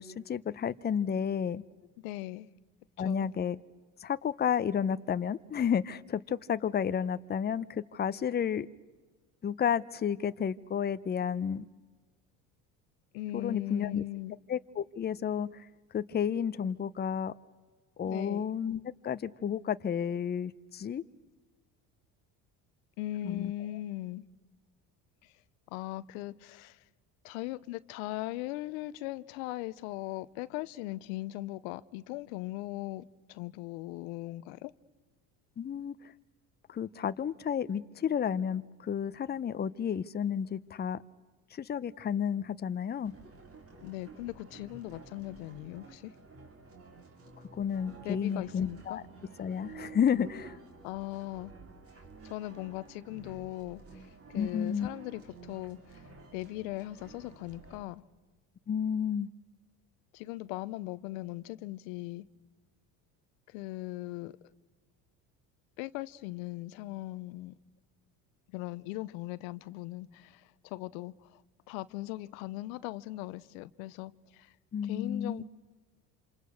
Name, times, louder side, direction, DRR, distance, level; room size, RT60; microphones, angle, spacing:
voice 1, 0.0-1.6 3.0-3.6 4.0-8.7 9.4-11.7 13.3-14.0 14.5-15.7 15.9-17.3 18.0-21.0 23.2-23.5 35.6-36.1 36.7-41.0 41.5-43.1 47.6-49.0 49.4-50.6 54.3-54.9 58.7-59.3 74.7-75.4, left 8 dB, 25° left, 0.7 m, -31 dB
voice 2, 2.0-2.5 3.0-3.3 13.1-14.4 18.0-18.4 23.0-24.2 25.2-25.3 25.7-26.8 27.2-34.7 43.8-46.1 48.0-49.0 50.8-51.5 52.2-58.0 60.1-62.3 63.5-64.3 65.8-67.5 68.5-71.4 71.7-74.5 74.8-75.4, left 17 dB, 90° left, 0.8 m, -39 dB
sound 1, 43.0-57.8, right 3 dB, 35° right, 3.4 m, -52 dB
27.0 x 27.0 x 6.4 m
supercardioid pair, 100°, 40 cm